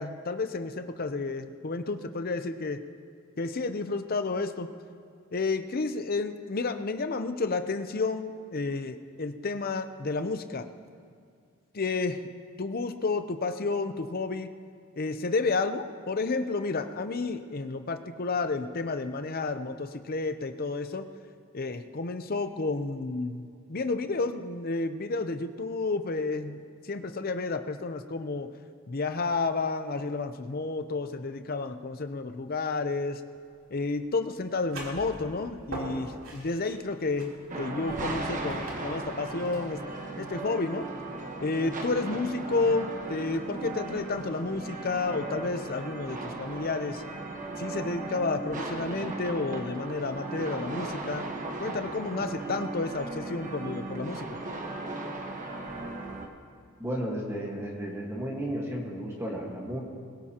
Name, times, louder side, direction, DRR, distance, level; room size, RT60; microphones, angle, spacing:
voice 1, 0.0-2.8 3.4-4.7 5.3-10.7 11.7-12.2 12.6-14.5 15.0-21.1 21.5-28.5 28.9-33.2 33.7-37.3 37.6-39.8 40.2-40.9 41.4-47.0 47.6-51.3 51.6-54.3, left 3 dB, 45° left, 9 dB, 0.6 m, -31 dB
sound 1, 33.3-40.9, right 2 dB, 70° right, 3.4 m, -44 dB
sound 2, 37.5-56.3, right 2 dB, 40° right, 1.2 m, -37 dB
voice 2, 56.8-59.8, equal, 10° right, -2 dB, 1.5 m, -33 dB
21.5 x 16.0 x 2.9 m, 2.2 s
head